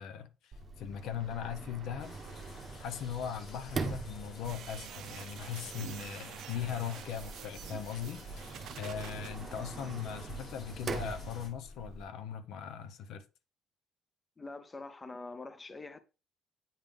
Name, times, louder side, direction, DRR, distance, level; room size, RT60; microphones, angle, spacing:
voice 1, 0.0-2.2 2.8-13.2, left 8 dB, 75° left, 0.7 m, -40 dB
Sliding door, 0.5-12.0, right 4 dB, 30° right, 0.8 m, -43 dB
sound 1, 2.0-11.5, left 3 dB, 50° left, 2.1 m, -52 dB
sound 2, 4.4-9.3, right 10 dB, 65° right, 0.5 m, -47 dB
voice 2, 14.4-16.0, left 3 dB, 20° left, 0.6 m, -44 dB
8.9 x 3.7 x 3.5 m
cardioid pair, 150°, 0 cm